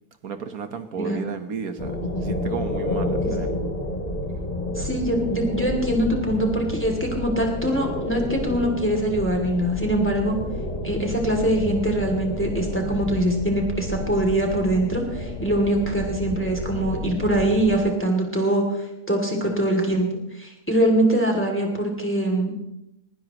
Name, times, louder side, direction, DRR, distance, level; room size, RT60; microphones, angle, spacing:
voice 1, 0.2-2.0 2.2-3.5, right 6 dB, 75° right, 8 dB, 1.7 m, -33 dB
sound 1, 1.8-17.8, left 1 dB, 25° left, 3.2 m, -30 dB
voice 2, 4.7-10.4 10.8-18.6 19.1-20.1 20.4-22.5, right 1 dB, 10° left, 1 dB, 2.7 m, -23 dB
20.5 x 18.5 x 3.1 m, 0.86 s
omnidirectional pair, 1.6 m